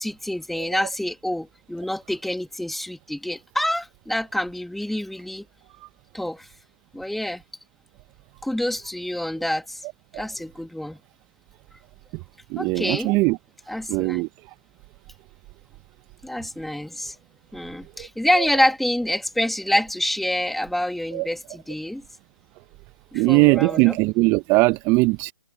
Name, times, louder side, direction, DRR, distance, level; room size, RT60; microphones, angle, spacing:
voice 1, 0.0-5.5 6.1-6.5 6.9-7.4 8.4-9.8 10.1-11.0 12.6-13.1 13.7-14.2 16.2-17.2 17.5-22.0 23.1-24.0, left 1 dB, ahead, 2.3 m, -27 dB
voice 2, 12.5-13.4 13.9-14.3 18.0-18.1 18.4-18.5 21.1-21.3 23.1-25.3, right 25 dB, 25° right, 1.1 m, -20 dB
hypercardioid pair, 140°, 11 cm